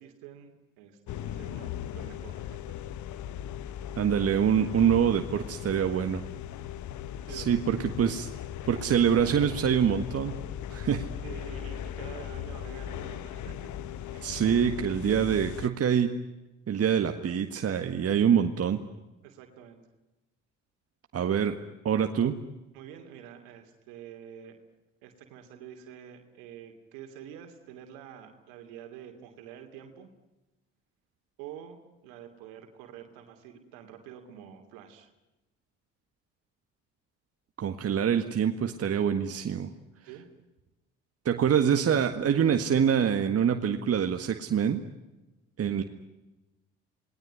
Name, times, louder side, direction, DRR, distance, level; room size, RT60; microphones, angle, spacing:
voice 1, 0.0-2.7 7.2-7.6 11.2-13.7 14.0-14.3 19.2-19.8 22.7-24.6 25.0-30.1 31.4-35.1 40.0-40.2, right 9 dB, 75° right, 6 dB, 2.9 m, -47 dB
sound 1, 1.1-15.7, left 10 dB, 55° left, 1.3 m, -38 dB
voice 2, 4.0-6.3 7.3-8.3 8.6-10.4 10.7-11.1 14.1-16.1 16.7-18.8 21.1-21.6 21.8-22.4 37.6-39.7 41.3-44.8 45.6-45.8, right 8 dB, 45° right, 6 dB, 1.8 m, -25 dB
28.0 x 20.0 x 9.5 m, 1.0 s
hypercardioid pair, 60°, 34 cm